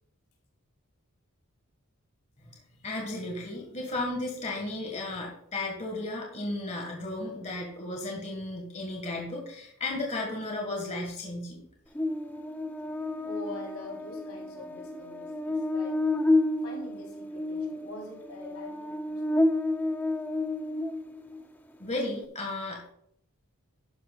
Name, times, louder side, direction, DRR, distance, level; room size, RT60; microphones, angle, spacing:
voice 1, 2.8-11.6 21.8-22.9, left 2 dB, 30° left, 0 dB, 1.7 m, -34 dB
Buzz, 12.0-21.4, left 2 dB, 10° left, 0.6 m, -30 dB
voice 2, 13.2-16.0 16.6-19.5, left 2 dB, 80° left, -1 dB, 3.7 m, -44 dB
12.0 x 10.0 x 2.4 m, 0.68 s
head